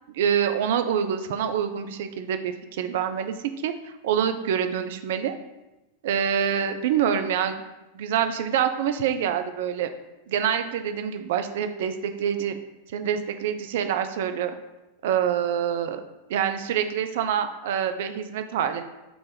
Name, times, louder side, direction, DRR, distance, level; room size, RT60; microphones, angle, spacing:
voice 1, 0.1-3.3 3.6-5.3 6.0-7.6 7.9-9.9 10.3-12.6 12.9-14.6 15.0-16.0 16.3-18.8, right 8 dB, 55° right, 8 dB, 0.4 m, -26 dB
4.4 x 2.4 x 3.9 m, 1.0 s
figure-of-eight pair, 90°, 0 cm